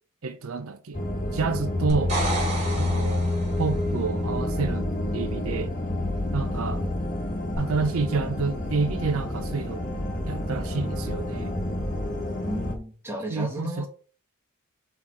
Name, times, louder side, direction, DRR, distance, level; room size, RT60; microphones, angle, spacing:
voice 1, 0.2-1.0 1.3-2.2 2.8-3.3 3.6-5.8 6.3-6.8 7.6-9.9 10.3-11.6 13.3-13.9, right 4 dB, 75° right, 0.6 m, -29 dB
sound 1, 0.9-12.8, left 1 dB, 40° left, 1.2 m, -29 dB
sound 2, 1.9-3.8 7.5-7.6, right 2 dB, 30° right, 3.4 m, -31 dB
voice 2, 12.4-13.9, equal, 10° right, 1.6 m, -34 dB
5.6 x 4.5 x 4.8 m
head